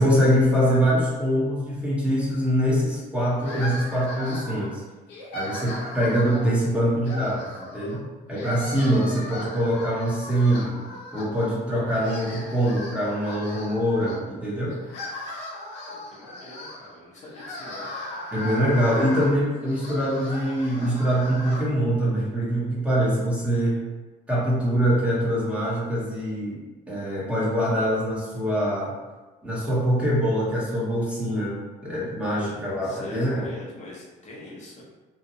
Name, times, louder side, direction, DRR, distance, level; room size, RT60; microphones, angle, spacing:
voice 1, 0.0-4.8 5.3-8.0 8.3-10.8 11.1-14.8 18.3-23.8 24.3-28.9 29.4-33.5, equal, 5° right, -7 dB, 0.8 m, -24 dB
sound 1, 3.4-4.7 5.1-6.6 7.0-8.0 8.3-11.6 11.9-14.2 14.7-21.6, left 1 dB, 80° left, 0.7 m, -37 dB
voice 2, 15.9-17.9 18.9-19.2 32.8-34.8, left 2 dB, 45° left, -5 dB, 0.7 m, -44 dB
2.7 x 2.0 x 2.6 m, 1.2 s
cardioid pair, 110°, 17 cm